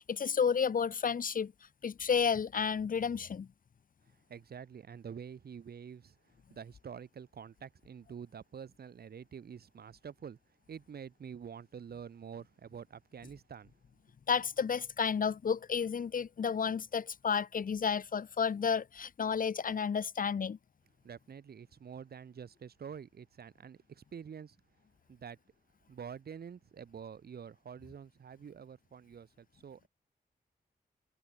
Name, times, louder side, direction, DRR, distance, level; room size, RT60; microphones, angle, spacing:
voice 1, 0.0-1.5 1.8-3.5 14.3-20.6, left 6 dB, 60° left, 1.0 m, -31 dB
voice 2, 4.0-10.4 10.7-13.7 21.0-24.6 25.1-25.4 25.9-29.9, right 7 dB, 75° right, 1.7 m, -47 dB
wide cardioid pair, 85°, 16 cm